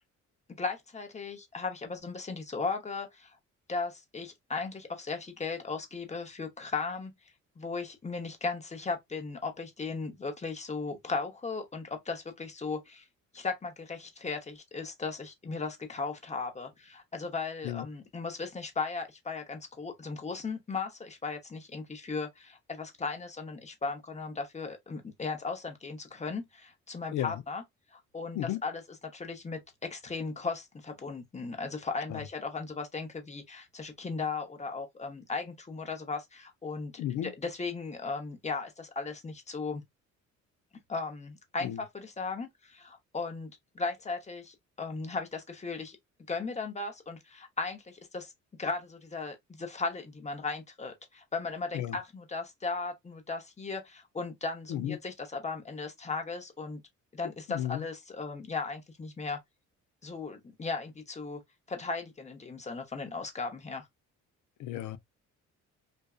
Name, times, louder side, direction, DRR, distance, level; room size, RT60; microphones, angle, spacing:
voice 1, 0.6-3.4 3.7-7.1 7.6-13.1 13.3-27.6 27.9-39.8 40.9-46.0 46.3-48.3 48.6-56.8 57.1-59.4 60.0-61.4 61.7-63.9, left 4 dB, 25° left, 0.8 m, -37 dB
voice 2, 37.0-37.3 41.6-41.8 51.7-52.0 54.7-55.0 57.5-57.8 64.6-65.0, left 12 dB, 75° left, 0.5 m, -33 dB
2.6 x 2.2 x 2.3 m
cardioid pair, 90°, 30 cm